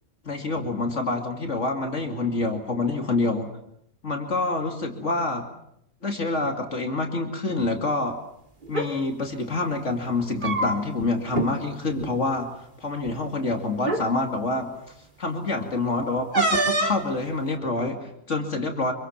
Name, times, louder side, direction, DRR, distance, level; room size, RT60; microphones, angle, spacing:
voice 1, 0.2-3.5 4.0-5.4 6.0-8.2 8.7-12.5 12.8-18.9, left 2 dB, 70° left, 4 dB, 2.8 m, -27 dB
sound 1, 8.6-8.9 10.1-11.0 11.3-11.5 11.9-12.1 13.1-13.2 13.8-14.1 16.3-17.1, right 2 dB, 40° right, 2.6 m, -25 dB
26.5 x 24.0 x 7.3 m, 0.76 s
omnidirectional pair, 1.3 m